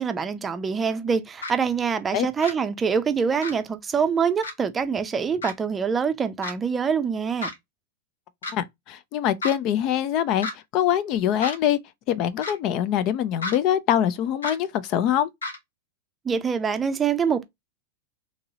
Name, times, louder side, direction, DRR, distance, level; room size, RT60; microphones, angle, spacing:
voice 1, 0.0-7.5 16.3-17.4, right 6 dB, 20° right, 0.5 m, -25 dB
sound 1, 1.4-1.5 2.4-2.5 3.4-3.5 4.4-4.5 5.4-5.5 6.4-6.5 7.4-7.6 8.4-8.5 9.4-9.6 10.4-10.5 11.4-11.6 12.4-12.6 13.4-13.6 14.4-14.6 15.4-15.6, left 2 dB, 85° left, 1.0 m, -31 dB
voice 2, 8.5-11.8 12.1-15.3, left 10 dB, 45° left, 0.4 m, -24 dB
2.9 x 2.7 x 2.7 m
hypercardioid pair, 100°, 0 cm